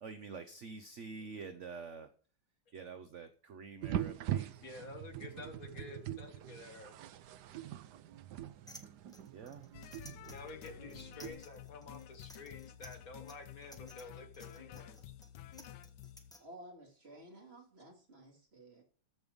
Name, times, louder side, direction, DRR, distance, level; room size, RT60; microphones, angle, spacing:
voice 1, 0.0-2.1 2.7-4.6 5.2-5.3 9.3-9.7, right 5 dB, 55° right, 9 dB, 0.9 m, -47 dB
sound 1, 3.8-11.3, right 11 dB, 70° right, 1.2 m, -42 dB
voice 2, 4.6-6.9 10.3-15.0, left 3 dB, 50° left, 6 dB, 1.7 m, -50 dB
sound 2, 8.7-16.4, equal, ahead, 1.2 m, -57 dB
sound 3, 9.7-16.3, left 10 dB, 75° left, 1.2 m, -51 dB
voice 3, 16.4-18.8, right 1 dB, 35° right, 1 dB, 2.7 m, -54 dB
14.0 x 5.4 x 5.1 m, 0.41 s
omnidirectional pair, 2.0 m